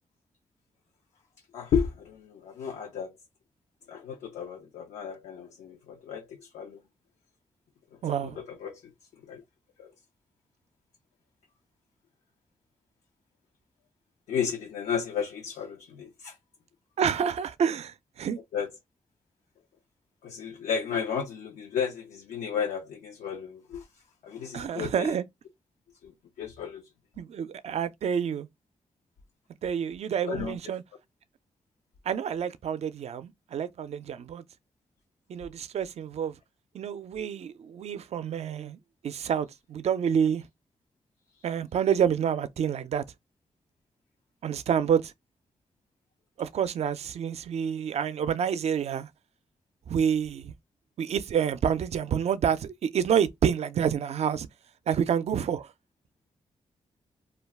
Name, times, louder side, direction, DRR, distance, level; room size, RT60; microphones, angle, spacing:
voice 1, 1.5-3.1 3.9-6.8 8.2-8.9 9.2-9.4 9.8-9.9 14.3-16.4 18.5-18.7 20.2-23.8 24.2-25.2 26.0-26.9 30.3-30.6, left 7 dB, 85° left, 0.5 m, -33 dB
voice 2, 8.0-8.4 17.0-18.4 24.5-25.2 27.2-28.5 29.6-30.8 32.1-34.4 35.3-36.4 36.7-38.8 39.0-40.4 41.4-43.0 44.4-45.1 46.4-49.1 49.9-50.5 51.0-54.5 54.9-55.7, right 8 dB, 65° right, 0.4 m, -28 dB
2.3 x 2.3 x 3.3 m
supercardioid pair, 55°, 12 cm